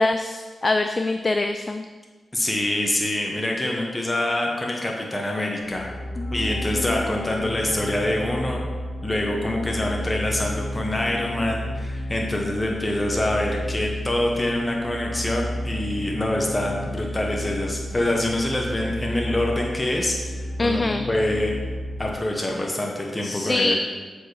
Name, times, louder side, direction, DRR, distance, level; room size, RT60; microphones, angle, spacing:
voice 1, 0.0-1.9 6.2-6.5 6.9-7.0 20.6-21.0 23.2-23.7, left 2 dB, 40° left, 7 dB, 0.3 m, -24 dB
voice 2, 2.3-5.9 6.3-8.6 9.0-21.5 22.0-23.8, left 1 dB, 25° left, 0 dB, 1.0 m, -25 dB
sound 1, 5.6-22.1, left 1 dB, 80° left, 1.4 m, -32 dB
7.4 x 4.7 x 3.3 m, 1.4 s
cardioid pair, 50°, 0 cm